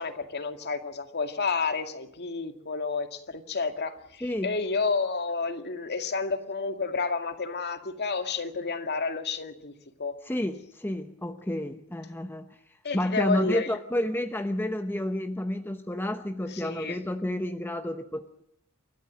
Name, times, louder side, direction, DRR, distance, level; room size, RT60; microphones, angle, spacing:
voice 1, 0.0-9.7 10.0-10.1 12.8-13.7 16.5-17.0, left 4 dB, 50° left, 2.2 m, -30 dB
voice 2, 4.2-4.5 10.2-12.6 12.9-18.4, left 1 dB, 10° left, 0.9 m, -30 dB
30.0 x 14.0 x 7.6 m
head